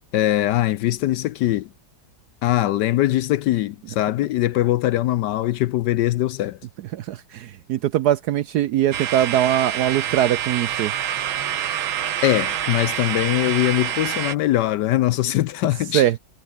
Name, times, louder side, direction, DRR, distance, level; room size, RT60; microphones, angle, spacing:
voice 1, 0.1-1.7 2.4-6.6 12.2-16.0, left 14 dB, 75° left, 1.1 m, -21 dB
voice 2, 6.9-10.9 15.9-16.2, right 11 dB, 70° right, 1.0 m, -21 dB
sound 1, 8.9-14.4, right 10 dB, 85° right, 2.1 m, -26 dB
omnidirectional pair, 2.1 m